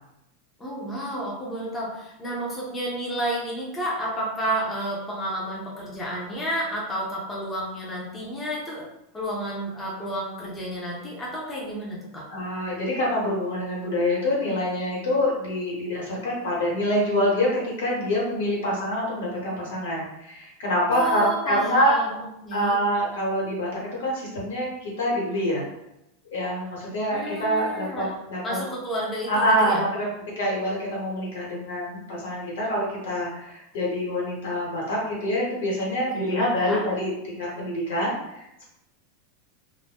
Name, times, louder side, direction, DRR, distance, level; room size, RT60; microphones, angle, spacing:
voice 1, 0.6-8.9 9.1-12.3 20.9-22.1 22.4-22.8 27.1-28.2 28.4-29.8 36.1-36.8, right 1 dB, 10° left, -5 dB, 0.6 m, -31 dB
voice 2, 12.3-22.0 22.5-25.7 26.3-28.6 29.3-30.1 30.3-38.6, equal, 85° left, -3 dB, 1.3 m, -26 dB
2.5 x 2.2 x 3.4 m, 0.84 s
supercardioid pair, 165°, 0 cm